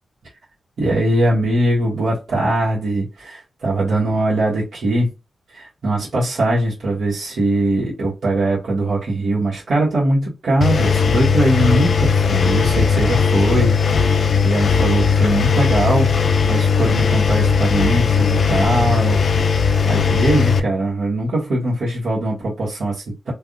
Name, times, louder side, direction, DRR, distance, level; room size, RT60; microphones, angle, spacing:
voice 1, 0.8-5.1 5.5-19.2 19.5-23.3, right 1 dB, 75° right, 1.3 m, -21 dB
Engine, 10.6-20.6, left 5 dB, 65° left, 0.3 m, -17 dB
3.5 x 2.4 x 2.5 m
cardioid pair, 90°, 0 cm